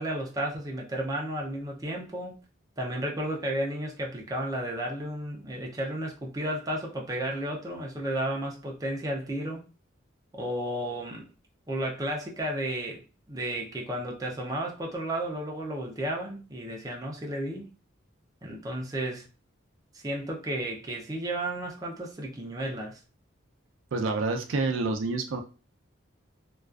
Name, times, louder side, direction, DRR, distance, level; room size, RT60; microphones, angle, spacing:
voice 1, 0.0-2.3 2.8-9.6 10.3-11.3 11.7-13.0 13.3-17.7 18.4-19.2 19.9-23.0, right 1 dB, 20° right, 0.4 m, -33 dB
voice 2, 23.9-25.4, right 3 dB, 75° right, 0.4 m, -28 dB
2.4 x 2.2 x 2.3 m
head